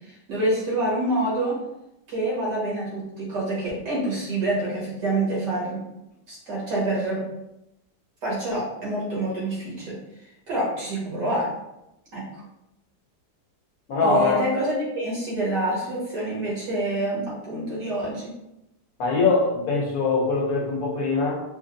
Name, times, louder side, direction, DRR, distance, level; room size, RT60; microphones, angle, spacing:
voice 1, 0.0-1.6 2.1-5.8 6.3-7.2 8.2-10.0 10.5-11.5 12.1-12.3 14.0-18.3, right 1 dB, 90° right, -6 dB, 2.2 m, -27 dB
voice 2, 13.9-14.4 19.0-21.4, left 3 dB, 65° left, -2 dB, 1.3 m, -22 dB
5.1 x 2.1 x 2.6 m, 0.88 s
omnidirectional pair, 1.8 m